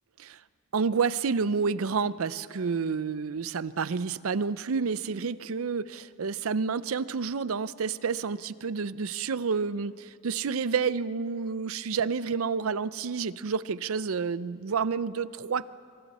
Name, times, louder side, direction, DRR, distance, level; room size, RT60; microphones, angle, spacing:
voice 1, 0.7-15.7, right 5 dB, 80° right, 16 dB, 0.6 m, -29 dB
26.5 x 25.5 x 4.2 m, 2.3 s
head